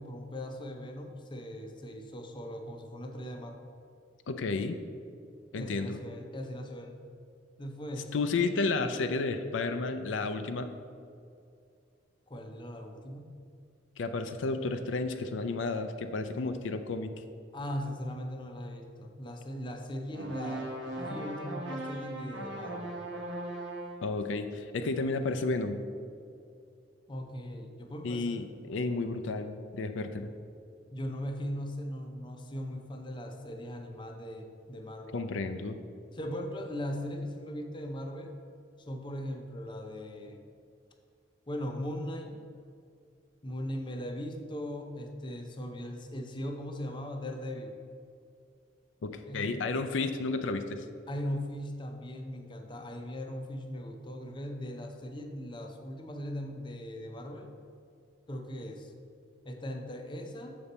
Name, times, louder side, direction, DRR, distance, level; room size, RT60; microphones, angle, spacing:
voice 1, 0.0-3.6 5.6-7.0 7.6-8.1 12.3-13.4 17.5-20.7 21.0-23.0 27.1-28.4 30.9-35.2 36.1-38.3 38.9-40.4 41.5-42.4 43.4-47.7 49.3-49.6 51.1-57.5 58.3-58.9 59.4-60.5, equal, 25° left, 4 dB, 0.6 m, -39 dB
voice 2, 4.3-4.8 5.5-6.0 8.1-10.7 14.0-17.1 24.0-25.8 28.0-28.4 28.7-30.3 35.1-35.8 49.0-50.8, left 3 dB, 85° left, 8 dB, 0.4 m, -32 dB
sound 1, 20.1-24.1, right 1 dB, 70° right, 1.0 m, -38 dB
7.0 x 5.2 x 4.1 m, 2.4 s
head